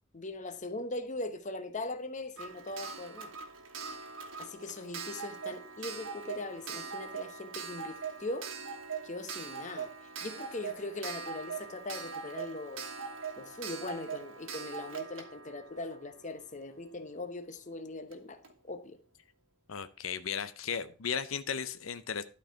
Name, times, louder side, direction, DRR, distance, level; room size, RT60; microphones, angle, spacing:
voice 1, 0.1-3.3 4.4-8.5 9.0-9.9 10.2-12.8 13.4-18.4 18.6-19.0, left 2 dB, 35° left, 1.0 m, -40 dB
Clock, 2.4-16.9 18.1-18.2 18.4-18.5, right 5 dB, 75° right, 1.4 m, -42 dB
voice 2, 19.7-22.2, left 7 dB, 85° left, 0.7 m, -35 dB
12.0 x 4.6 x 5.7 m
head